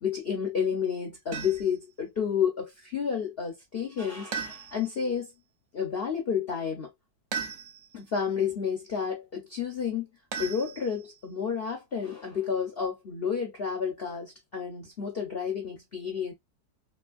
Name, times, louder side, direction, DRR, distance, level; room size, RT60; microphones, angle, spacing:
voice 1, 0.0-5.3 5.7-6.9 7.9-10.1 10.4-16.3, left 7 dB, 90° left, 0.5 m, -30 dB
sound 1, 1.3-1.8 4.3-5.0 7.3-8.0 10.3-11.2, right 7 dB, 70° right, 0.7 m, -37 dB
3.3 x 2.5 x 2.3 m
omnidirectional pair, 2.0 m